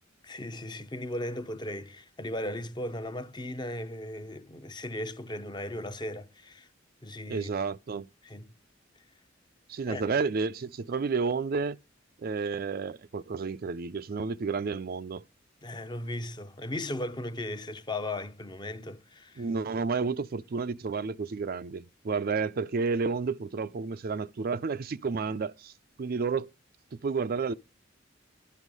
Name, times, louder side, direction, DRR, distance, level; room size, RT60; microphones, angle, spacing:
voice 1, 0.2-6.7 7.0-7.5 8.2-8.5 9.9-10.0 15.6-19.4, left 1 dB, 25° left, 0.7 m, -37 dB
voice 2, 7.3-8.1 9.7-11.8 12.2-15.2 19.4-25.7 26.0-26.5 26.9-27.5, right 4 dB, 50° right, 0.4 m, -31 dB
12.0 x 6.3 x 5.3 m
head